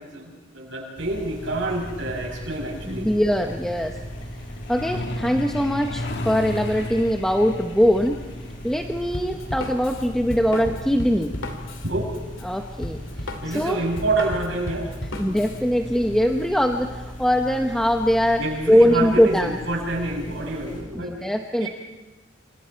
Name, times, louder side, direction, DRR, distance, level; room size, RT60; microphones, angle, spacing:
voice 1, 0.0-3.1 11.8-12.1 13.4-14.9 15.3-15.4 18.4-21.3 21.6-21.7, right 2 dB, 70° right, -2 dB, 7.3 m, -28 dB
sound 1, 0.9-20.8, equal, 45° left, 7.4 m, -39 dB
Truck, 1.5-13.8 15.1-15.2 15.6-15.8 16.2-16.5 16.8-16.9 17.3-17.4, left 1 dB, 60° left, 1.7 m, -37 dB
voice 2, 2.9-4.0 4.7-8.2 8.6-11.3 12.4-13.0 13.5-13.8 15.1-18.4 18.7-19.6 20.9-21.7, equal, 5° left, 3 dB, 1.0 m, -21 dB
Drum kit, 9.1-15.6, left 1 dB, 85° left, 2.8 m, -34 dB
28.0 x 27.5 x 4.6 m, 1.1 s
head